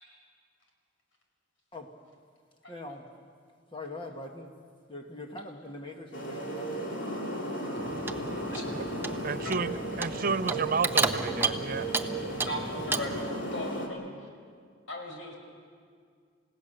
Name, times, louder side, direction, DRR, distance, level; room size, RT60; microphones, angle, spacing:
voice 1, 2.7-3.1 3.7-4.5 4.9-6.9, left 1 dB, 25° left, 3 dB, 1.5 m, -42 dB
sound 1, 6.1-13.9, right 1 dB, 70° left, 2.9 m, -35 dB
Clock, 7.8-13.2, right 3 dB, 10° right, 0.8 m, -33 dB
voice 2, 9.2-11.9, right 5 dB, 45° right, 13 dB, 0.6 m, -31 dB
voice 3, 12.4-13.2 13.5-14.1 14.9-15.3, left 1 dB, 90° left, 1 dB, 5.1 m, -37 dB
29.0 x 17.0 x 6.7 m, 2.1 s
head